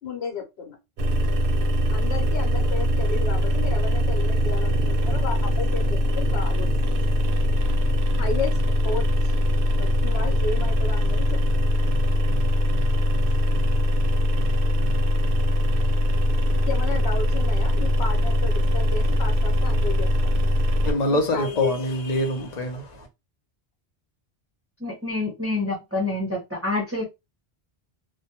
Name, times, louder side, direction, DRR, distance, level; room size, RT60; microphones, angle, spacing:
voice 1, 0.0-0.8 1.9-6.7 8.1-9.3 9.8-11.4 16.6-20.3 21.0-21.7, left 4 dB, 85° left, 1.1 m, -33 dB
sound 1, 1.0-20.9, left 1 dB, 65° right, 0.7 m, -22 dB
voice 2, 20.9-23.1, left 1 dB, 50° left, 0.7 m, -25 dB
voice 3, 24.8-26.4 26.6-27.0, left 2 dB, 15° right, 0.6 m, -27 dB
2.2 x 2.1 x 2.8 m
omnidirectional pair, 1.0 m